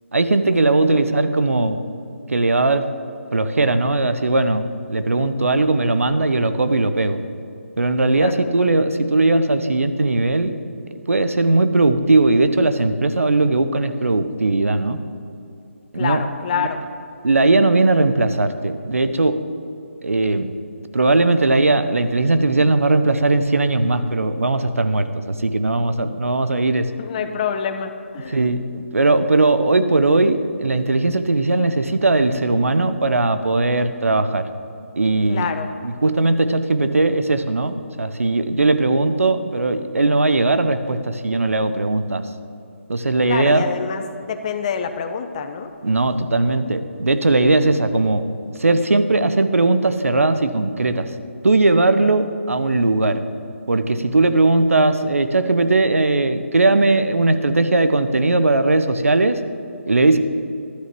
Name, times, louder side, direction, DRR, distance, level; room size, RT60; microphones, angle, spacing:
voice 1, 0.1-1.8 2.3-2.8 3.3-7.2 7.8-10.6 11.1-15.0 15.9-16.2 16.6-16.7 17.2-19.4 20.0-20.5 20.9-26.9 28.3-34.4 35.0-35.5 35.8-42.2 42.9-43.6 45.8-48.3 48.6-51.1 51.4-53.2 53.7-59.4 59.9-60.2, right 2 dB, 80° right, 10 dB, 0.7 m, -18 dB
voice 2, 15.9-16.8 27.0-28.4 35.3-35.7 38.9-39.0 43.3-45.7 52.0-52.1, left 7 dB, 30° left, 7 dB, 0.7 m, -27 dB
11.5 x 6.5 x 6.1 m, 2.6 s
figure-of-eight pair, 150°, 7 cm